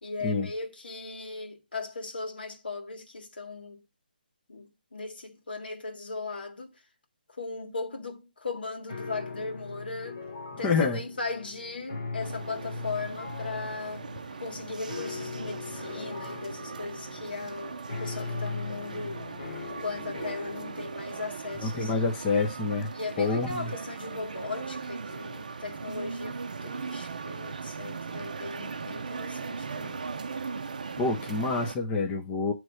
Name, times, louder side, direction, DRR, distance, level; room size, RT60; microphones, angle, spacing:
voice 1, 0.0-3.8 4.5-6.8 7.3-10.2 10.6-14.1 14.4-19.3 19.6-21.9 22.9-30.1, left 3 dB, 80° left, 1.7 m, -38 dB
sound 1, 8.9-20.9, left 4 dB, 35° left, 1.2 m, -40 dB
voice 2, 10.6-11.0 21.6-22.9 23.2-23.7 31.0-32.5, left 4 dB, 10° left, 0.6 m, -27 dB
sound 2, 12.2-31.8, right 5 dB, 50° right, 0.6 m, -39 dB
7.6 x 3.2 x 6.2 m
hypercardioid pair, 175°, 5 cm